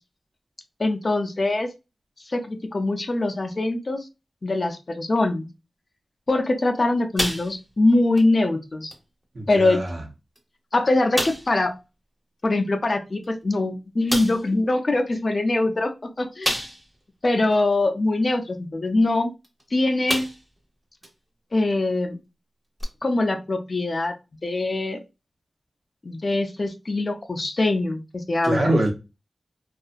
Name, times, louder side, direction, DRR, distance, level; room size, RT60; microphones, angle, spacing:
voice 1, 0.8-1.7 2.3-4.1 4.4-5.5 6.3-8.9 9.5-9.8 10.7-11.7 12.4-16.5 17.2-19.3 19.7-20.3 21.5-22.2 23.0-24.1 24.4-25.0 26.0-28.7, left 2 dB, 50° left, 0.4 m, -23 dB
sound 1, 7.2-7.8 8.2-8.3 8.9-9.0 9.9-10.0 10.3-10.4 11.1-11.6 13.2-13.3 14.1-14.5 16.4-17.0 17.5-17.6 19.4-19.6 20.1-20.6 21.0-21.1 22.8-22.9, equal, 10° right, 0.8 m, -28 dB
voice 2, 9.3-10.0 28.4-28.9, right 1 dB, 65° right, 0.9 m, -23 dB
2.7 x 2.4 x 2.4 m
wide cardioid pair, 85°, 0 cm